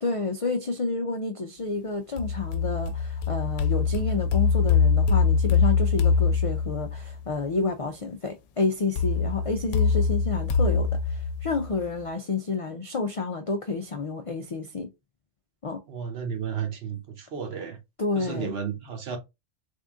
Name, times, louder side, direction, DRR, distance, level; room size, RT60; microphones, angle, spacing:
voice 1, 0.0-14.9 15.6-15.8 18.0-18.6, left 3 dB, 65° left, 0.3 m, -30 dB
sound 1, 2.2-7.1 9.0-12.0, left 5 dB, 90° left, 1.0 m, -23 dB
voice 2, 15.9-17.8 18.2-19.2, right 7 dB, 60° right, 1.1 m, -33 dB
3.6 x 2.6 x 3.5 m
omnidirectional pair, 1.2 m